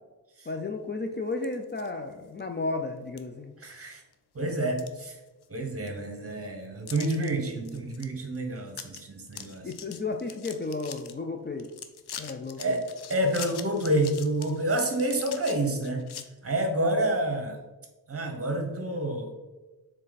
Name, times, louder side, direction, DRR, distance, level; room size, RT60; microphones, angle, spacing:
voice 1, 0.5-3.5 9.6-11.7 12.2-12.8, left 3 dB, 30° left, 4 dB, 0.4 m, -33 dB
sound 1, 1.3-1.9 2.4-2.5 3.2-3.3 3.7-4.1 4.5-5.6 5.9-6.0 6.9-7.3 7.7-8.1 8.4-8.5 8.7-9.0 9.3-11.1 11.6-16.2, left 8 dB, 85° left, 0.6 m, -43 dB
voice 2, 3.6-4.0 4.3-5.1 5.5-9.7 12.6-12.8 13.1-16.0 16.4-17.6 18.1-19.3, right 1 dB, 35° right, 4 dB, 1.1 m, -28 dB
7.3 x 3.4 x 4.0 m, 1.1 s
wide cardioid pair, 135°, 38 cm